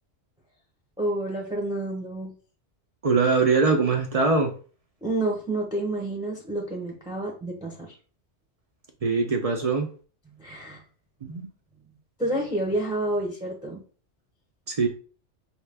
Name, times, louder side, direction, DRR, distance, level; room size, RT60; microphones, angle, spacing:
voice 1, 1.0-2.3 5.0-7.9 10.3-10.8 11.9-13.8, right 1 dB, 5° right, -1 dB, 0.6 m, -29 dB
voice 2, 3.0-4.5 9.0-9.9 11.2-11.5 14.7-14.9, right 4 dB, 50° right, 3 dB, 0.4 m, -22 dB
4.3 x 2.2 x 3.3 m, 0.39 s
omnidirectional pair, 1.2 m